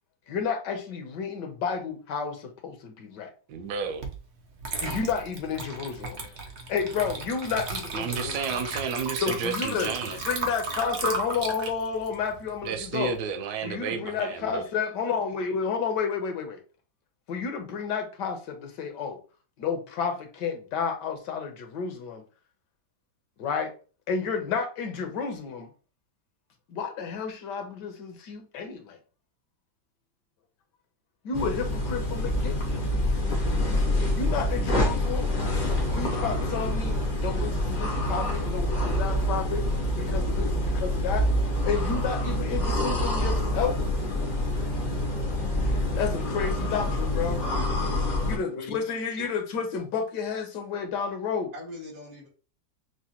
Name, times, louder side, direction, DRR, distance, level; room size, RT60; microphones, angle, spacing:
voice 1, 0.3-3.3 4.8-6.4 6.7-8.4 9.2-13.1 13.6-16.6 17.3-19.2 19.6-22.2 23.4-23.7 24.1-25.7 26.7-29.0 31.2-32.8 34.1-35.2 35.9-37.0 37.2-39.7 40.0-41.3 41.6-43.8 44.6-44.7 45.6-47.4 48.3-51.5, left 6 dB, 70° left, 1.3 m, -31 dB
voice 2, 3.5-4.1 7.9-10.2 12.6-14.6, right 6 dB, 70° right, 1.2 m, -32 dB
Water / Liquid, 4.0-4.2 4.6-13.1, right 3 dB, 55° right, 0.8 m, -35 dB
sound 1, 31.3-48.4, left 1 dB, 45° left, 0.5 m, -26 dB
voice 3, 47.1-48.0 51.5-52.3, left 1 dB, 90° right, 2.7 m, -41 dB
6.1 x 2.2 x 2.8 m
omnidirectional pair, 2.0 m